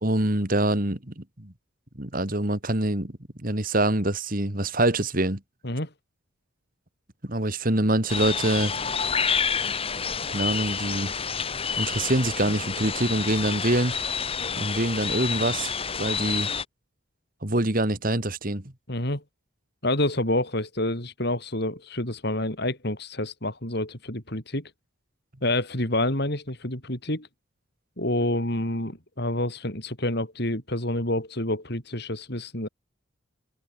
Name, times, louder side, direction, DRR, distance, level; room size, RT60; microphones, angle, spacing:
voice 1, 0.0-1.5 2.0-3.1 3.4-5.4 7.2-8.7 10.3-11.1 11.8-13.9 14.6-16.5 17.4-18.7, right 1 dB, 45° right, 2.6 m, -25 dB
sound 1, 8.1-16.6, left 6 dB, 30° left, 1.9 m, -29 dB
voice 2, 18.9-19.2 19.8-24.7 25.4-27.3 28.0-32.7, left 1 dB, 50° left, 5.1 m, -28 dB
head